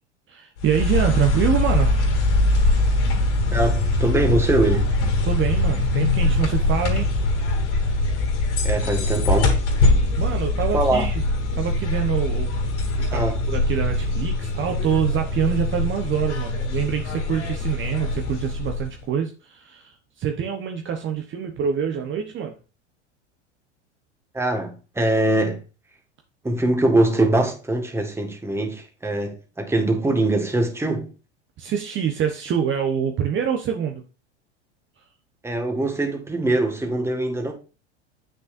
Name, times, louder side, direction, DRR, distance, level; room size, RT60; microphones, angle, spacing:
voice 1, 0.3-2.0 5.2-7.1 10.2-11.2 11.5-12.6 13.0-22.6 31.6-34.0, right 8 dB, 35° right, 1.1 m, -25 dB
sound 1, 0.6-19.0, left 2 dB, 75° left, 3.1 m, -22 dB
voice 2, 3.5-4.9 8.6-9.6 10.7-11.1 13.1-13.5 24.3-25.6 26.4-31.1 35.4-37.5, right 2 dB, 5° right, 1.7 m, -22 dB
7.9 x 6.3 x 2.6 m
hypercardioid pair, 100°, 35 cm